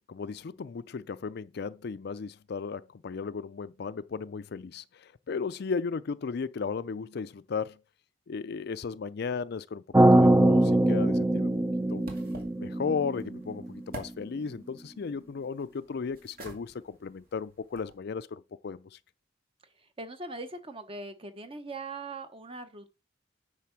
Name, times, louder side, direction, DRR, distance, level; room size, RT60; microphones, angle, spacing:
voice 1, 0.1-7.8 8.3-9.8 10.1-11.5 11.9-12.0 12.6-18.8, left 5 dB, 60° left, 0.4 m, -35 dB
sound 1, 9.9-14.1, right 1 dB, 15° right, 0.5 m, -22 dB
sound 2, 10.3-18.0, right 1 dB, 55° right, 2.3 m, -50 dB
voice 2, 20.0-22.9, right 2 dB, 30° right, 1.0 m, -40 dB
9.4 x 3.6 x 5.9 m
head